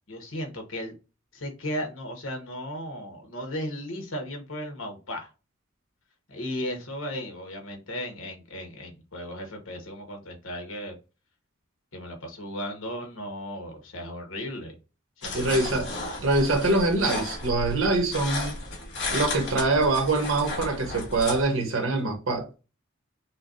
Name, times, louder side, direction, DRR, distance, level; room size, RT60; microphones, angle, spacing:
voice 1, 0.1-0.9 1.3-5.3 6.3-11.0 11.9-14.7 15.2-16.0, equal, 80° left, 1.4 m, -36 dB
sound 1, 15.2-21.4, left 2 dB, 60° left, 1.7 m, -34 dB
voice 2, 15.3-15.9 16.2-18.5 19.1-22.5, right 2 dB, 75° right, 1.2 m, -24 dB
5.6 x 2.3 x 2.7 m
head